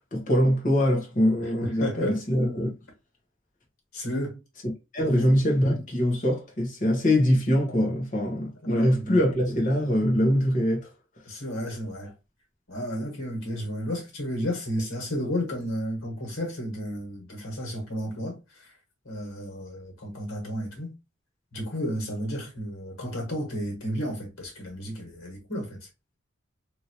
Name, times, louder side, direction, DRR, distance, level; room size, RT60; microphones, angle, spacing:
voice 1, 0.1-2.7 4.9-10.9, equal, 40° left, 1.0 m, -23 dB
voice 2, 1.6-2.2 3.9-4.4 5.0-5.3 8.6-9.2 11.2-12.1 12.7-18.7 19.0-20.9 21.5-25.9, equal, 85° left, 1.6 m, -32 dB
2.9 x 2.7 x 2.9 m
head